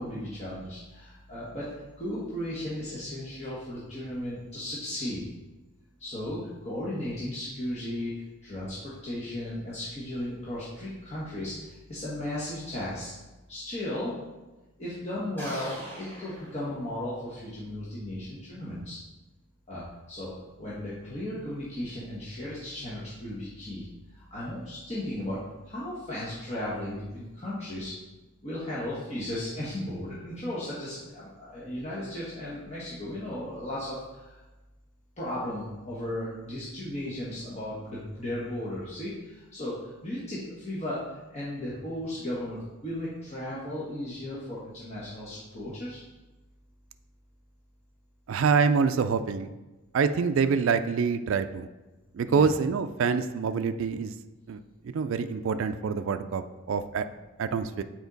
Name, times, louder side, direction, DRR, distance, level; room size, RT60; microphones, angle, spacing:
voice 1, 0.0-1.7 2.0-5.2 6.0-8.1 8.4-13.1 13.5-14.1 14.8-19.0 19.7-23.9 24.1-27.9 28.4-34.4 35.2-46.0 52.2-52.5, left 1 dB, 30° left, -8 dB, 1.2 m, -35 dB
sound 1, 15.4-17.3, equal, 10° left, 1.4 m, -42 dB
voice 2, 48.3-49.5 49.9-51.7 52.1-54.1 54.5-57.1 57.4-57.8, right 5 dB, 65° right, 9 dB, 0.3 m, -26 dB
7.1 x 4.4 x 4.0 m, 1.1 s
head